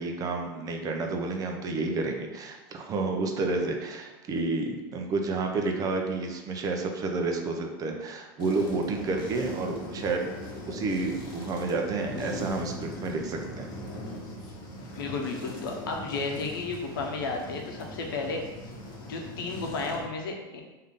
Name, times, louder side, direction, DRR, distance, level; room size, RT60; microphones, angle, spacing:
voice 1, 0.0-10.3 10.7-13.7, right 3 dB, 30° right, 3 dB, 0.6 m, -30 dB
sound 1, 8.4-20.0, equal, 40° left, 1.3 m, -40 dB
voice 2, 15.0-18.4 19.1-20.6, left 3 dB, 85° left, 1 dB, 0.8 m, -33 dB
3.6 x 2.7 x 3.6 m, 1.1 s
supercardioid pair, 120°, 11 cm